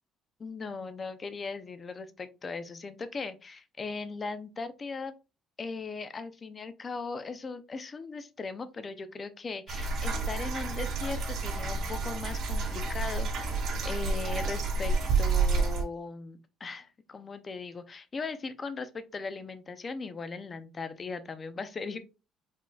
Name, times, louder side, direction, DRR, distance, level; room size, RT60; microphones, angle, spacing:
voice 1, 0.4-5.1 5.6-22.0, left 4 dB, 25° left, 11 dB, 0.4 m, -38 dB
sound 1, 9.7-15.8, right 4 dB, 55° right, 2.1 m, -29 dB
4.9 x 3.5 x 2.3 m, 0.30 s
cardioid pair, 160°, 0 cm